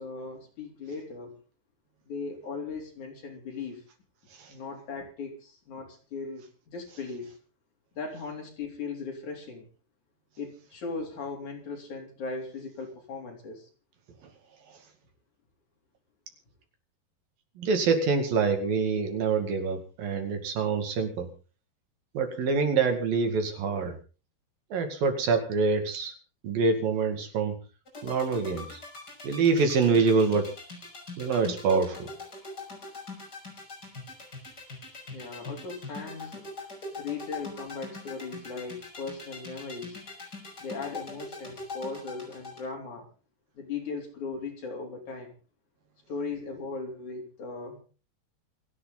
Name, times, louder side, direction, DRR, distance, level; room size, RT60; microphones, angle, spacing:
voice 1, 0.0-1.4 2.1-3.8 4.5-7.4 7.9-9.7 10.4-13.7 35.1-36.5 37.0-40.0 40.6-43.1 43.5-45.3 46.1-47.8, left 4 dB, 50° left, 2 dB, 4.8 m, -38 dB
voice 2, 17.6-21.3 22.1-24.0 24.7-26.2 26.4-27.6 28.0-28.8 29.2-30.5 31.2-32.1, right 4 dB, 65° right, 6 dB, 3.8 m, -26 dB
sound 1, 27.9-42.6, left 3 dB, 25° left, 6.1 m, -41 dB
28.0 x 9.8 x 4.0 m, 0.36 s
omnidirectional pair, 4.6 m